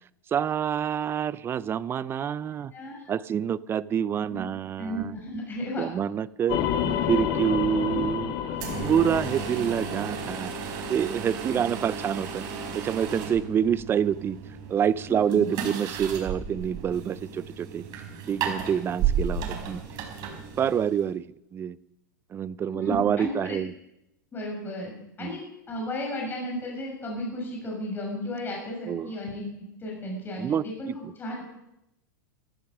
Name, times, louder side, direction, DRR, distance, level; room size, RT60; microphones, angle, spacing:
voice 1, 0.3-2.7 3.1-5.1 5.8-6.7 7.0-8.4 8.8-10.5 10.9-12.4 12.7-14.4 14.7-17.8 18.3-19.8 20.6-21.3 21.5-21.8 22.3-23.7 25.2-25.4 28.9-29.1 30.4-30.9, right 8 dB, 25° right, 19 dB, 0.6 m, -27 dB
voice 2, 2.7-3.1 4.3-4.4 4.8-5.9 15.1-15.5 22.8-23.6 24.3-24.9 25.2-25.4 25.7-29.4 29.8-31.4, left 1 dB, 20° left, -1 dB, 6.2 m, -34 dB
sound 1, 6.5-10.9, left 9 dB, 45° left, 1.7 m, -30 dB
sound 2, 8.5-21.1, right 7 dB, 45° right, 4.7 m, -33 dB
14.0 x 14.0 x 6.1 m, 0.86 s
hypercardioid pair, 115°, 10 cm